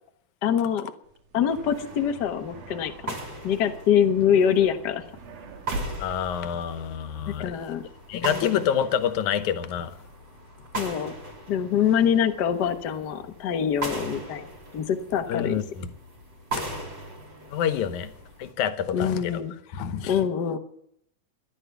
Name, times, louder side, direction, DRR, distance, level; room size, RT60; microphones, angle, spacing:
voice 1, 0.4-0.9 1.3-3.1 3.4-5.0 7.3-7.8 8.1-8.5 10.7-11.1 11.5-14.4 14.7-15.6 18.9-19.5 20.1-20.6, left 8 dB, 60° left, 1.1 m, -24 dB
sound 1, 1.0-7.4, right 2 dB, 80° right, 3.2 m, -41 dB
sound 2, 1.5-18.5, right 2 dB, 35° right, 3.5 m, -40 dB
voice 2, 6.0-7.7 8.1-10.0 15.3-15.9 16.5-16.6 17.5-18.1 18.4-19.4 19.7-20.2, left 8 dB, 75° left, 2.4 m, -27 dB
15.0 x 11.5 x 7.1 m
omnidirectional pair, 3.6 m